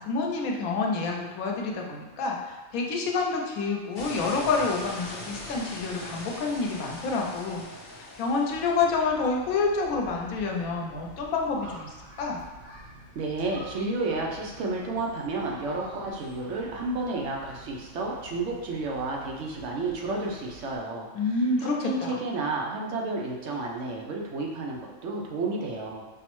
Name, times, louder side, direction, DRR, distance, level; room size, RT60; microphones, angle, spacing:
voice 1, 0.0-12.4 21.1-22.2, left 4 dB, 85° left, 0 dB, 1.1 m, -28 dB
sound 1, 4.0-8.8, left 1 dB, 55° left, 0.8 m, -40 dB
sound 2, 8.4-20.8, right 1 dB, 55° right, 1.9 m, -48 dB
voice 2, 13.1-21.1 21.3-26.1, right 3 dB, 70° right, -1 dB, 0.9 m, -31 dB
5.3 x 2.0 x 3.0 m, 1.2 s
omnidirectional pair, 1.4 m